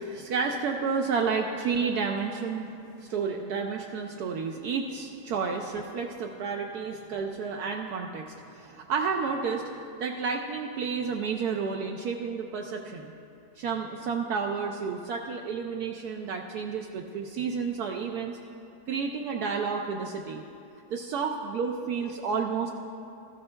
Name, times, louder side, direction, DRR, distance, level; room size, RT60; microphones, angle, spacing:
voice 1, 0.0-2.7 3.0-9.7 10.0-13.1 13.6-18.4 18.9-20.4 20.9-22.7, right 5 dB, 75° right, 2 dB, 1.1 m, -31 dB
15.0 x 13.5 x 2.2 m, 2.6 s
omnidirectional pair, 1.8 m